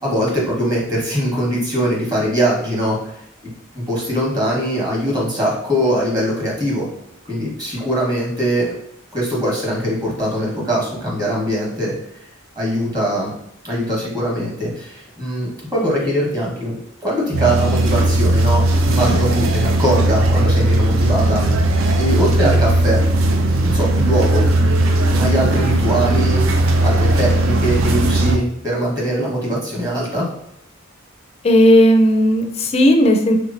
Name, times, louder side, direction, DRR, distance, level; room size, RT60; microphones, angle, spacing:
voice 1, 0.0-3.0 3.7-6.8 7.3-8.7 9.1-12.2 12.6-13.3 13.6-21.4 22.0-23.0 23.6-24.4 25.1-30.3, right 1 dB, 20° right, -4 dB, 1.1 m, -21 dB
sound 1, 17.3-28.4, right 1 dB, 70° right, 0.4 m, -17 dB
voice 2, 31.4-33.4, equal, 30° left, 5 dB, 0.4 m, -13 dB
3.4 x 2.9 x 2.5 m, 0.79 s
head